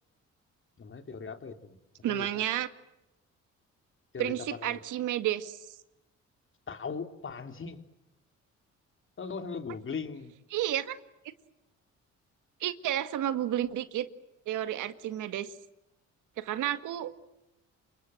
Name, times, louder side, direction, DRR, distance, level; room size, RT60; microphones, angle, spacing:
voice 1, 0.8-1.8 2.1-2.5 4.1-4.8 6.7-7.8 9.2-10.3, left 5 dB, 40° left, 7 dB, 3.3 m, -39 dB
voice 2, 2.0-2.7 4.2-5.6 10.5-11.0 12.6-14.1 14.5-15.5 16.4-17.1, right 12 dB, 85° right, 11 dB, 1.9 m, -31 dB
29.0 x 26.5 x 7.7 m, 0.91 s
cardioid pair, 90°, 30 cm